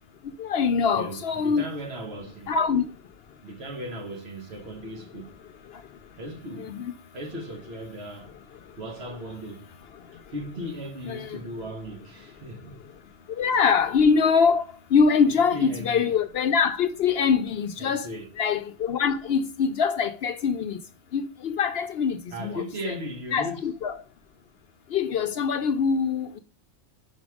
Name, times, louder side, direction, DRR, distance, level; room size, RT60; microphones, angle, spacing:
voice 1, 0.4-1.7 2.5-2.8 6.6-6.9 11.1-11.3 13.4-14.6 14.9-18.1 18.4-20.8 21.1-22.6 22.8-22.9 23.3-24.0 24.9-26.4, left 6 dB, 65° left, 0.7 m, -23 dB
voice 2, 0.9-2.5 3.4-5.4 6.2-6.7 7.1-8.3 8.8-9.7 10.3-12.9 15.3-16.2 17.8-18.3 22.3-23.7, equal, 60° right, 1.5 m, -37 dB
5.7 x 5.1 x 4.7 m
omnidirectional pair, 1.3 m